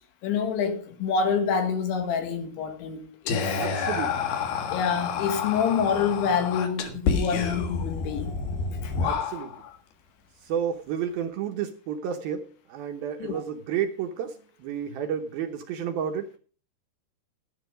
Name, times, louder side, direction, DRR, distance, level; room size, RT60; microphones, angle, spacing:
voice 1, 0.2-3.6 4.7-8.3 8.8-9.0 13.2-13.4, left 6 dB, 90° left, 4.0 m, -27 dB
Whispering, 3.3-9.7, left 5 dB, 65° left, 3.2 m, -29 dB
voice 2, 3.6-4.2 9.0-9.5 10.4-16.3, right 8 dB, 75° right, 2.3 m, -31 dB
11.5 x 11.5 x 5.0 m
omnidirectional pair, 5.2 m